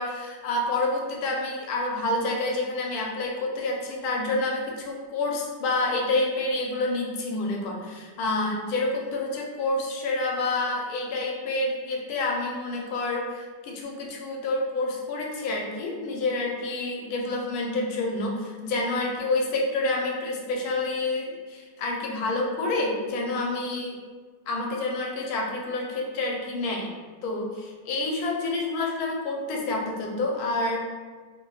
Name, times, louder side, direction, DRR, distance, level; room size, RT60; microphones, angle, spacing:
voice 1, 0.0-24.0 24.5-26.9 27.2-30.8, left 2 dB, 70° left, -1 dB, 1.0 m, -28 dB
2.7 x 2.1 x 3.0 m, 1.5 s
omnidirectional pair, 1.8 m